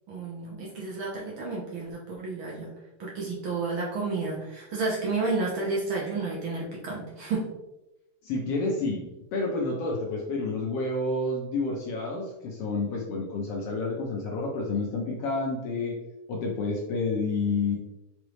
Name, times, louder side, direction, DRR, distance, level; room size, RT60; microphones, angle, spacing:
voice 1, 0.1-2.7 3.0-7.5, right 3 dB, 65° right, -4 dB, 1.3 m, -31 dB
voice 2, 8.2-15.9 16.3-17.8, left 3 dB, 85° left, -1 dB, 1.3 m, -29 dB
5.3 x 3.2 x 3.0 m, 0.95 s
omnidirectional pair, 3.5 m